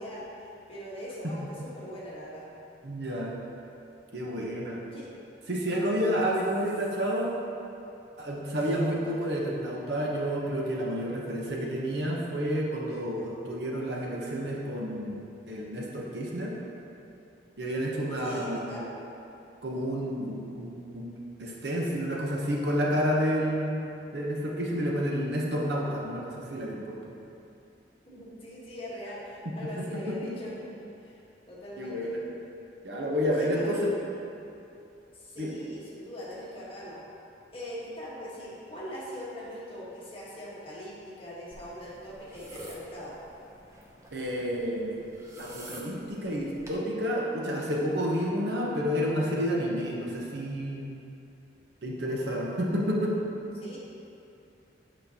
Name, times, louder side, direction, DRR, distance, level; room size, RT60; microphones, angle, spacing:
voice 1, 0.0-2.5 4.9-5.1 6.2-6.3 8.8-9.1 18.2-18.9 28.1-30.5 30.8-31.2 31.5-32.1 33.3-33.9 35.1-37.0 37.5-43.2 53.5-53.8, equal, 30° left, -7 dB, 1.3 m, -41 dB
voice 2, 2.8-3.3 4.1-4.8 5.5-7.3 8.2-16.5 17.6-18.8 19.6-21.1 21.4-23.8 24.1-27.0 29.4-30.2 31.8-32.2 32.8-33.9 35.4-35.5 44.1-45.0 45.4-50.9 51.8-53.2, equal, 60° right, -3 dB, 0.9 m, -30 dB
sound 1, 41.5-46.8, right 1 dB, 15° right, 0.6 m, -47 dB
8.1 x 5.1 x 2.8 m, 2.7 s
head